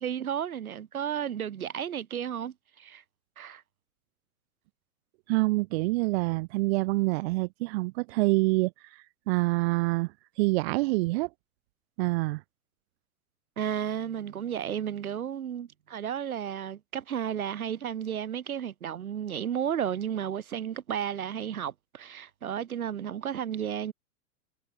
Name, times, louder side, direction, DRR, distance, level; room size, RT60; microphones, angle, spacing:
voice 1, 0.0-3.0 3.4-3.6 13.6-23.9, right 9 dB, 85° right, 1.4 m, -33 dB
voice 2, 5.3-11.3 12.0-12.4, right 22 dB, 50° right, 0.6 m, -27 dB
hypercardioid pair, 110°, 42 cm